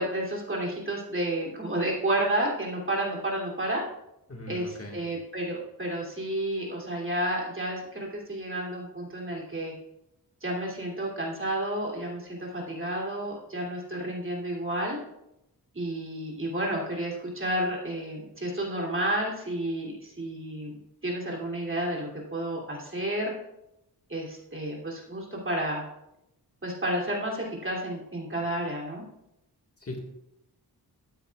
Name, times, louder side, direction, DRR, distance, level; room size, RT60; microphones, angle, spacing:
voice 1, 0.0-3.8 4.5-9.7 10.4-15.0 15.7-20.8 21.0-23.3 24.1-25.8 26.6-29.0, right 1 dB, 30° right, -3 dB, 2.9 m, -31 dB
voice 2, 4.3-5.0 29.8-30.0, left 1 dB, 35° left, 0 dB, 1.7 m, -39 dB
13.5 x 9.1 x 2.4 m, 0.85 s
wide cardioid pair, 100°, 39 cm